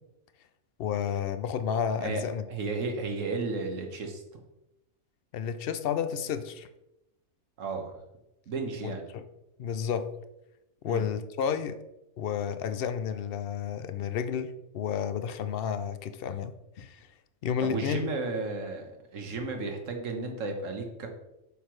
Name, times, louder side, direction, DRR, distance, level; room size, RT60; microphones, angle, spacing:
voice 1, 0.8-2.4 5.3-6.7 8.8-9.2 9.6-10.1 10.8-11.8 12.2-17.1 17.4-18.1, left 7 dB, 65° left, 11 dB, 0.6 m, -31 dB
voice 2, 2.5-4.4 7.6-7.9 8.5-9.1 10.8-11.1 17.6-21.1, right 3 dB, 65° right, 4 dB, 1.5 m, -33 dB
7.9 x 6.4 x 3.2 m, 0.91 s
omnidirectional pair, 1.5 m